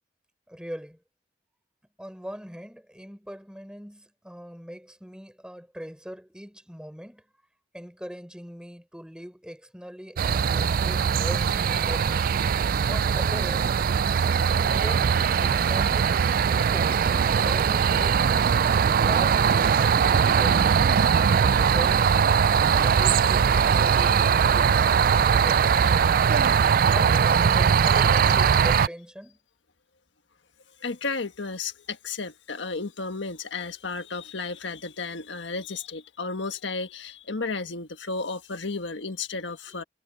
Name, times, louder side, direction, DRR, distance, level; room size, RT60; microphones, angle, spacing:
voice 1, 0.5-1.0 2.0-7.2 7.7-12.2 12.9-13.7 14.3-17.1 17.4-22.1 26.8-29.4 39.7-39.9, equal, 5° right, 4.3 m, -40 dB
sound 1, 10.2-28.9, right 7 dB, 50° right, 0.3 m, -21 dB
voice 2, 30.8-39.8, left 4 dB, 80° left, 1.5 m, -33 dB
head